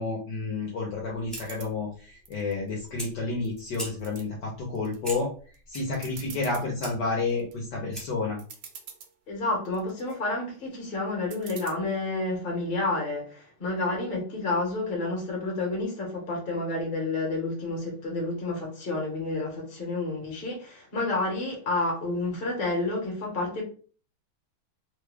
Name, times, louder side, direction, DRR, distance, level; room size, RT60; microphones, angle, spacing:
voice 1, 0.0-5.3 5.7-8.4, left 3 dB, 65° left, 1.2 m, -30 dB
Fire, 0.9-8.3, equal, ahead, 0.6 m, -44 dB
sound 1, 1.3-1.7 2.3-3.0 3.4-4.2 4.8-5.2 5.5-5.6 5.9-6.7 7.2-7.5 8.1-8.2 8.4-9.1 9.7-10.2 11.3-11.7, right 7 dB, 70° right, 1.1 m, -45 dB
voice 2, 9.3-23.6, left 2 dB, 35° left, 1.0 m, -30 dB
3.3 x 2.2 x 3.4 m
omnidirectional pair, 2.2 m